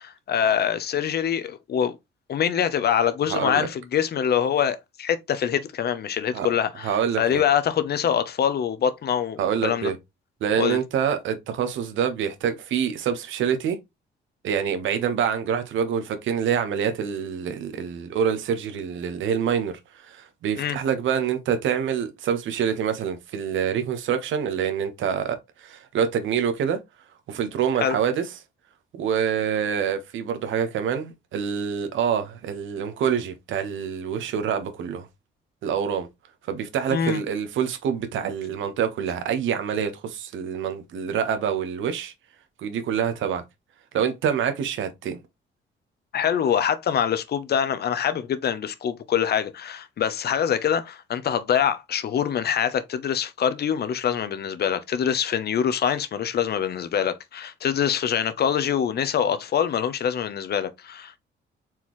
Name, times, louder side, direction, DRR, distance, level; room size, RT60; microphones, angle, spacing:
voice 1, 0.0-2.0 2.3-9.9 10.6-10.8 20.6-20.8 27.8-28.0 36.9-37.2 46.1-61.2, left 8 dB, 55° left, 0.7 m, -24 dB
voice 2, 3.3-3.7 6.3-6.5 6.8-7.4 9.4-10.0 10.4-13.8 14.4-26.8 27.3-28.3 28.9-35.1 35.6-36.1 36.5-42.1 42.6-43.4 43.9-45.2, right 7 dB, 75° right, 1.0 m, -26 dB
4.5 x 3.8 x 3.0 m
cardioid pair, 90°, 20 cm